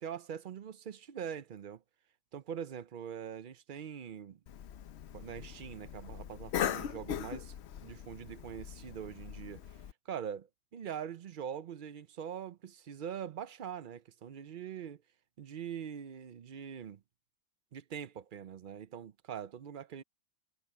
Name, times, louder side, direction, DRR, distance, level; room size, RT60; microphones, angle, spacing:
voice 1, 0.0-1.8 2.3-4.4 5.1-7.5 7.8-15.0 15.4-17.0 17.7-20.0, right 8 dB, 50° right, 0.7 m, -43 dB
Cough, 4.5-9.9, left 10 dB, 70° left, 0.9 m, -40 dB
omnidirectional pair, 1.2 m